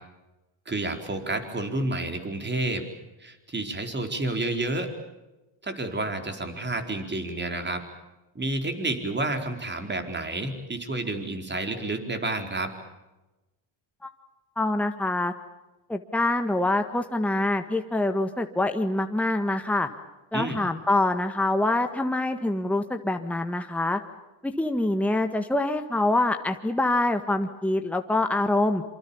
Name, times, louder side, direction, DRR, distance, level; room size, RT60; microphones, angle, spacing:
voice 1, 0.7-2.9 3.2-4.9 5.6-7.8 8.3-12.7 20.3-20.6, right 2 dB, 20° right, 5 dB, 4.5 m, -30 dB
voice 2, 14.6-15.3 15.9-19.9 20.3-24.0 24.4-28.8, left 2 dB, 5° left, 5 dB, 1.6 m, -25 dB
27.0 x 25.5 x 7.2 m, 1.1 s
cardioid pair, 95°, 47 cm